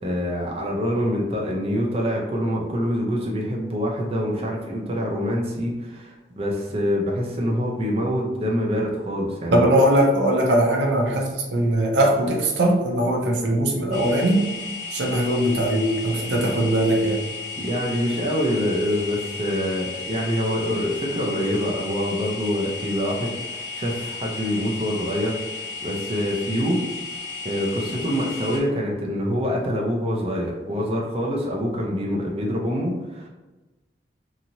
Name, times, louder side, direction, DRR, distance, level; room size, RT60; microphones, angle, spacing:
voice 1, 0.0-9.7 17.6-26.8 27.4-33.3, equal, 35° right, -2 dB, 0.4 m, -25 dB
voice 2, 9.5-14.5 14.9-17.2, right 1 dB, 80° right, 1 dB, 0.6 m, -20 dB
sound 1, 13.9-28.6, left 4 dB, 40° left, 0.6 m, -34 dB
2.9 x 2.7 x 2.6 m, 1.2 s
head